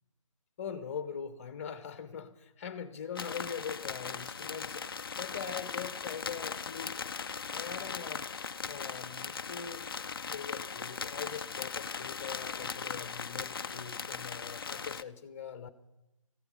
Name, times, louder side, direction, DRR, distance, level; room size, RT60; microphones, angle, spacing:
voice 1, 0.6-4.9 5.1-7.0 7.5-8.3 8.7-9.9 10.3-15.7, left 7 dB, 25° left, 13 dB, 1.1 m, -42 dB
sound 1, 3.2-15.0, left 5 dB, 45° left, 0.5 m, -39 dB
17.5 x 15.0 x 5.3 m, 0.93 s
figure-of-eight pair, 150°, 17 cm